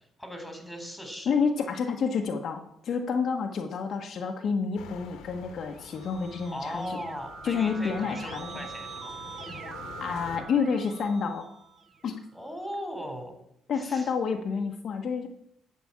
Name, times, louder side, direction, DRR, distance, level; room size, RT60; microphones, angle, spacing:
voice 1, 0.0-1.3 6.5-9.2 12.3-13.4 13.7-14.1, equal, 5° left, 4 dB, 3.7 m, -38 dB
voice 2, 1.2-7.0 7.4-8.7 10.0-11.5 12.0-12.2 13.7-15.3, left 5 dB, 60° left, 3 dB, 1.3 m, -29 dB
sound 1, 4.8-10.4, left 5 dB, 90° left, 1.6 m, -47 dB
Keyboard (musical), 5.5-12.2, right 5 dB, 35° right, 1.3 m, -44 dB
12.0 x 5.2 x 8.7 m, 0.76 s
cardioid pair, 90°, 0 cm